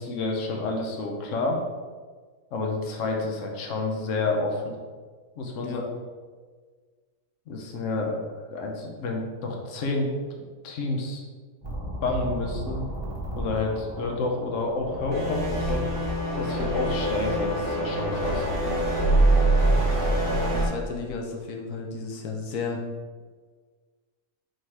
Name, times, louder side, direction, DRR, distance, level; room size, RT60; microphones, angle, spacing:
voice 1, 0.0-1.6 2.5-4.7 5.4-5.9 7.5-11.2 12.0-12.8 13.4-15.8 16.3-18.5, left 3 dB, 60° left, 1 dB, 1.2 m, -29 dB
sound 1, 11.6-20.7, right 1 dB, 15° right, 1.6 m, -26 dB
voice 2, 20.3-22.8, left 4 dB, 90° left, 2 dB, 1.3 m, -33 dB
5.2 x 3.9 x 4.9 m, 1.5 s
omnidirectional pair, 1.6 m